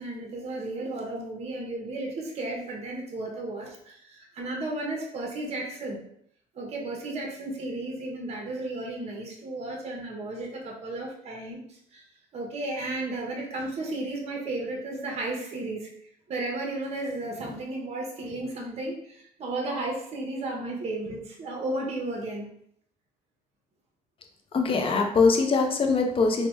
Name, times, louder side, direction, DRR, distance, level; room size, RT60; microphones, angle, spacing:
voice 1, 0.0-6.0 6.6-11.6 11.9-12.0 12.3-15.9 16.3-22.4, right 2 dB, 40° right, 0 dB, 0.7 m, -34 dB
voice 2, 24.5-26.5, left 4 dB, 30° left, 3 dB, 0.5 m, -22 dB
3.2 x 2.1 x 3.1 m, 0.69 s
cardioid pair, 110°, 17 cm